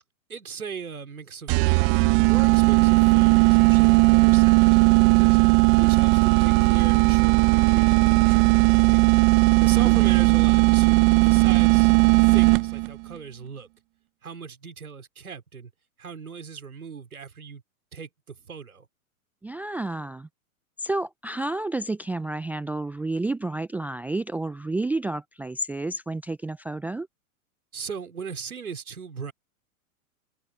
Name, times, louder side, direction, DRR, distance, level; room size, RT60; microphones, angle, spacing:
voice 1, 0.3-9.1 9.6-11.9 12.2-13.7 14.2-15.7 16.0-17.6 17.9-18.9 27.7-29.3, right 6 dB, 80° right, 4.9 m, -39 dB
sound 1, 1.5-12.9, right 37 dB, 40° right, 1.2 m, -17 dB
voice 2, 19.4-20.3 20.8-27.1, right 2 dB, 5° right, 0.5 m, -30 dB
figure-of-eight pair, 105°, 43 cm